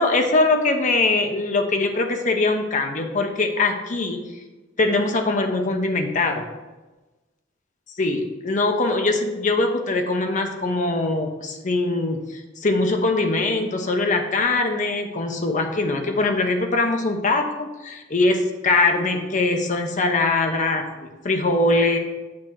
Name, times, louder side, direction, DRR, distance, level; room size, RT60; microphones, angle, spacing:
voice 1, 0.0-4.2 4.8-6.5 8.0-22.0, left 2 dB, 40° left, 4 dB, 0.8 m, -22 dB
8.6 x 2.9 x 6.1 m, 1.2 s
head